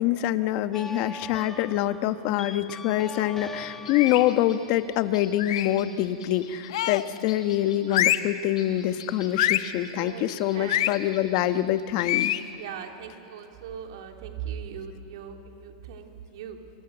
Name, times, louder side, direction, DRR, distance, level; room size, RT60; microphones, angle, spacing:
voice 1, 0.0-12.3, left 13 dB, 45° left, 11 dB, 1.2 m, -25 dB
sound 1, 0.7-5.8, left 2 dB, 10° left, 1.5 m, -42 dB
sound 2, 3.8-12.4, left 6 dB, 90° left, 7.1 m, -48 dB
sound 3, 3.9-4.4 5.4-5.8 6.7-7.2 7.9-8.4 9.4-9.8 10.7-11.0 12.0-12.5, left 14 dB, 65° left, 1.1 m, -26 dB
voice 2, 9.8-10.8 12.6-16.6, right 8 dB, 65° right, 3 dB, 3.4 m, -39 dB
27.0 x 26.0 x 8.0 m, 2.7 s
supercardioid pair, 145°, 3 cm